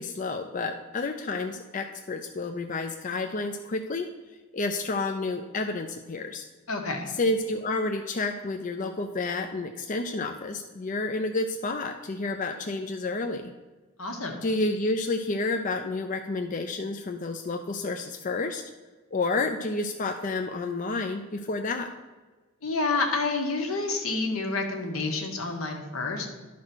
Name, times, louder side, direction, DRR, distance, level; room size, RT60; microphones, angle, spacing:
voice 1, 0.0-4.1 4.5-6.4 7.2-13.5 14.4-18.6 19.1-21.9, left 3 dB, 35° left, 5 dB, 0.4 m, -30 dB
voice 2, 6.7-7.1 14.0-14.4 22.6-26.3, left 3 dB, 80° left, 3 dB, 1.5 m, -29 dB
11.5 x 4.2 x 6.1 m, 1.3 s
head